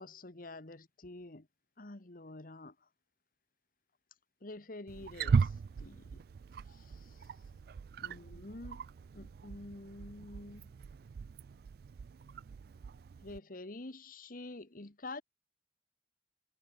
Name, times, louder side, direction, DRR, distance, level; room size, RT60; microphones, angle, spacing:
voice 1, 0.0-1.5 1.8-2.7 4.4-6.2 6.7-7.2 8.0-8.9 9.1-10.7 13.2-15.2, left 2 dB, 50° left, 1.5 m, -48 dB
Wild animals, 4.9-13.4, right 5 dB, 60° right, 0.3 m, -38 dB
head